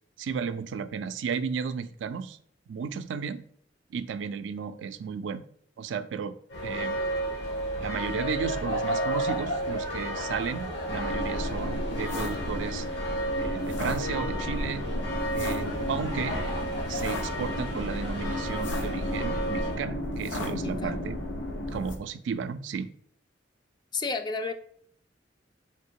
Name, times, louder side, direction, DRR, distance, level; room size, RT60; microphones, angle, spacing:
voice 1, 0.2-2.4 2.7-3.4 3.9-5.4 5.8-6.4 6.6-7.0 7.8-12.9 13.4-14.9 15.3-16.4 16.9-21.2 21.7-22.9, right 6 dB, 85° right, 12 dB, 0.3 m, -34 dB
sound 1, 6.5-19.8, right 1 dB, 75° left, 1.2 m, -32 dB
sound 2, 10.9-22.0, left 1 dB, 90° left, 0.7 m, -33 dB
voice 2, 20.5-21.0 23.9-24.5, left 4 dB, 25° left, 8 dB, 0.3 m, -32 dB
3.2 x 2.8 x 4.5 m, 0.64 s
head